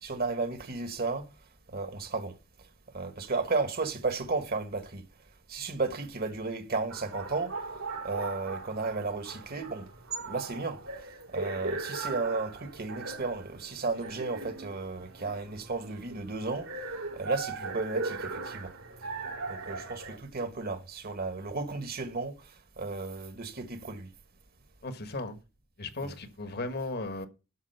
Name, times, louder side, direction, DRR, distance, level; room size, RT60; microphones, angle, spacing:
voice 1, 0.0-1.3 1.7-2.3 2.9-5.1 5.5-7.5 8.0-9.9 10.2-10.8 11.3-16.7 17.1-18.7 19.5-22.4 22.8-24.1 26.0-26.1, right 3 dB, 45° right, 1.5 m, -33 dB
sound 1, 6.9-20.2, right 3 dB, 85° right, 3.4 m, -39 dB
voice 2, 24.8-25.4 25.8-27.3, left 2 dB, 50° left, 1.4 m, -36 dB
12.5 x 5.2 x 6.7 m
head